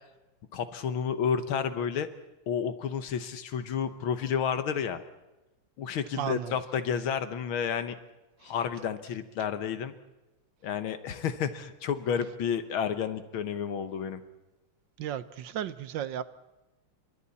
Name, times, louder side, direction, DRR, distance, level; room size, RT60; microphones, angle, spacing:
voice 1, 0.5-2.1 2.5-5.0 5.8-8.0 8.4-9.9 10.6-14.2, left 7 dB, 75° left, 11 dB, 2.0 m, -31 dB
voice 2, 6.2-6.5 8.4-8.5 15.0-16.2, right 10 dB, 65° right, 14 dB, 1.5 m, -34 dB
30.0 x 25.0 x 4.2 m, 1.0 s
omnidirectional pair, 2.3 m